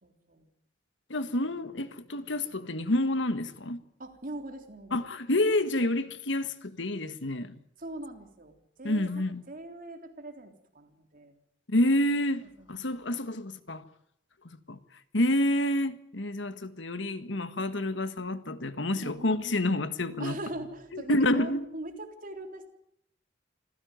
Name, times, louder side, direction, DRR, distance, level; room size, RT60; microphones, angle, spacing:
voice 1, 0.0-0.5 4.0-5.1 7.8-11.4 12.4-12.7 19.0-19.5 20.2-22.7, right 1 dB, 50° right, 3.6 m, -41 dB
voice 2, 1.1-3.8 4.9-7.6 8.8-9.4 11.7-13.8 14.7-14.8 15.1-20.4 20.9-21.6, left 1 dB, 80° left, 1.6 m, -28 dB
26.0 x 16.0 x 9.5 m
head